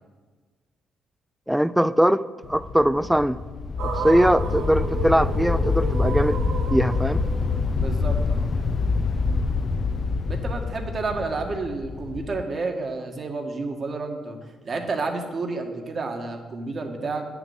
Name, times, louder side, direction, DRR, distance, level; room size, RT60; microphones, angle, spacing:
voice 1, 1.5-2.2 2.5-3.4 3.8-6.4 6.7-7.2 9.3-9.4, equal, 5° right, 16 dB, 0.3 m, -21 dB
sound 1, 2.4-12.4, left 4 dB, 50° left, 0.6 m, -26 dB
sound 2, 3.8-8.0, right 5 dB, 80° right, 1.0 m, -33 dB
voice 2, 7.7-8.5 10.3-14.4 14.6-17.3, right 3 dB, 45° right, 3 dB, 1.7 m, -30 dB
9.7 x 6.0 x 8.0 m, 1.4 s
cardioid pair, 90°, 0 cm